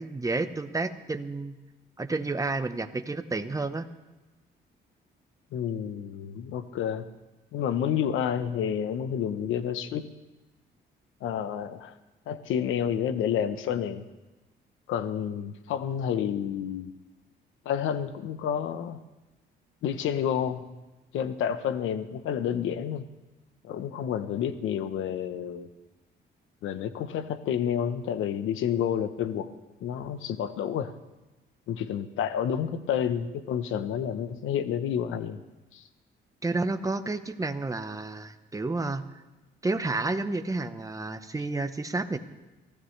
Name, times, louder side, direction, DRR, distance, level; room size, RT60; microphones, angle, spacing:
voice 1, 0.0-1.6 2.0-3.9 36.4-39.0 39.6-42.2, right 3 dB, 15° right, 9 dB, 1.0 m, -30 dB
voice 2, 5.5-7.1 7.5-10.1 11.2-11.9 12.3-14.1 14.9-16.9 17.6-19.0 19.8-20.7 21.1-23.0 23.6-25.7 26.6-29.5 29.8-30.9 31.7-35.4 35.7-35.8, left 9 dB, 85° left, 11 dB, 1.0 m, -29 dB
24.0 x 15.5 x 3.3 m, 1.1 s
cardioid pair, 90°, 20 cm